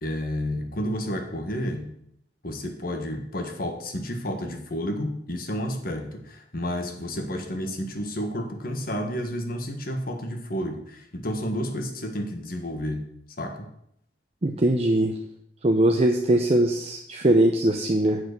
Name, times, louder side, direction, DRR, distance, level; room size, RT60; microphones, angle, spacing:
voice 1, 0.0-2.0 2.4-13.1 13.4-13.7, equal, 55° left, 5 dB, 1.5 m, -31 dB
voice 2, 14.4-15.1 15.6-18.2, right 1 dB, 35° right, 3 dB, 0.7 m, -21 dB
7.7 x 6.7 x 6.7 m, 0.74 s
head